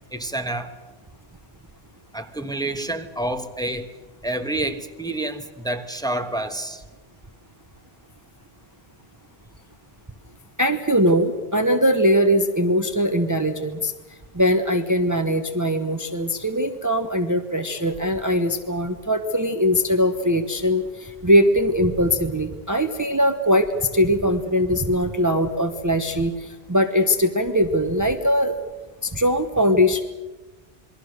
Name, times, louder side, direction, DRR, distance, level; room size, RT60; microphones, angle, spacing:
voice 1, 0.1-0.7 2.1-3.9 4.2-6.8, right 1 dB, 5° left, 6 dB, 1.2 m, -28 dB
voice 2, 10.6-13.9 14.3-23.7 23.9-26.3 26.7-28.5 29.0-30.0, equal, 20° right, 6 dB, 1.0 m, -21 dB
28.0 x 21.5 x 6.6 m, 1.2 s
omnidirectional pair, 1.1 m